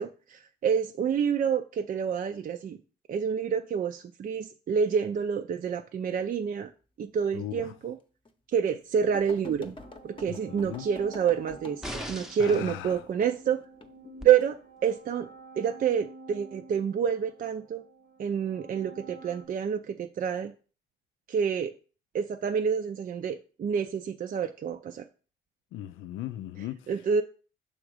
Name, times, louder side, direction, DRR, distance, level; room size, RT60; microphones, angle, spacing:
voice 1, 0.0-2.8 3.1-6.7 7.0-8.0 8.5-9.8 10.0-13.6 14.2-15.3 15.6-17.8 18.2-20.5 21.3-21.7 22.1-25.1 26.9-27.2, right 7 dB, 45° right, 0.5 m, -28 dB
voice 2, 7.3-7.7 10.3-10.9 12.4-13.0 25.7-26.9, left 13 dB, 85° left, 0.4 m, -38 dB
sound 1, 7.6-7.7 8.2-8.3 9.1-13.4 13.8-14.4 15.1-15.4, left 2 dB, 25° left, 0.8 m, -46 dB
sound 2, 9.6-19.5, right 3 dB, 90° right, 1.2 m, -50 dB
sound 3, 11.8-12.6 14.2-14.3, equal, ahead, 0.7 m, -38 dB
6.1 x 3.6 x 4.9 m
cardioid pair, 90°, 20 cm